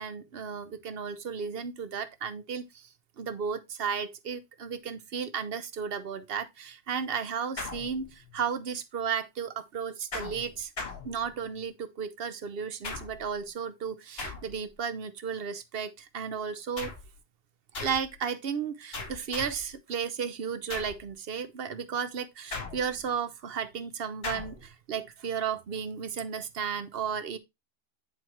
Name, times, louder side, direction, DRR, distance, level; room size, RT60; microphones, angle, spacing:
voice 1, 0.0-2.9 3.2-10.7 11.0-16.9 17.8-27.4, right 6 dB, 65° right, 0.9 m, -34 dB
sound 1, 7.6-8.4 10.1-11.6 12.8-13.4 14.2-14.8 16.8-17.2 17.7-18.2 18.9-19.7 20.7-21.1 22.5-23.1 24.2-24.7, left 3 dB, 70° left, 1.6 m, -39 dB
9.3 x 4.4 x 3.0 m
omnidirectional pair, 1.1 m